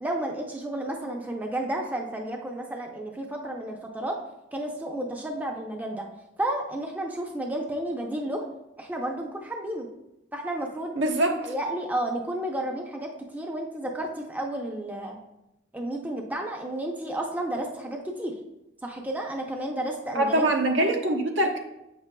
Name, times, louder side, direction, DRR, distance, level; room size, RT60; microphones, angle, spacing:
voice 1, 0.0-4.2 4.5-6.1 6.4-8.5 8.8-9.9 10.3-10.9 11.4-15.2 15.7-18.4 18.8-20.4, right 1 dB, 10° right, 1 dB, 0.5 m, -32 dB
voice 2, 11.0-11.3 20.1-21.6, right 1 dB, 75° right, 3 dB, 0.9 m, -23 dB
8.2 x 5.9 x 2.2 m, 0.92 s
head